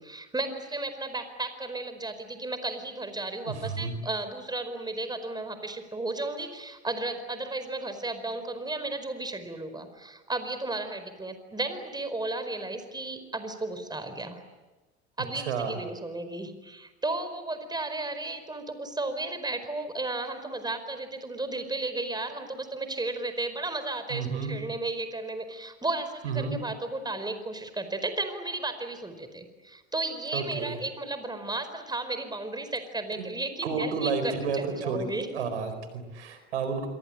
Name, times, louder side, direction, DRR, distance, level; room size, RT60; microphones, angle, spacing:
voice 1, 0.0-14.4 15.2-35.3, right 2 dB, 10° right, 10 dB, 4.9 m, -34 dB
voice 2, 3.5-3.9 15.3-15.8 24.1-24.6 26.2-26.6 30.3-30.8 33.2-33.3 33.6-35.1 35.3-36.9, right 5 dB, 80° right, 9 dB, 4.4 m, -31 dB
27.0 x 24.5 x 8.9 m, 1.2 s
hypercardioid pair, 75°, 33 cm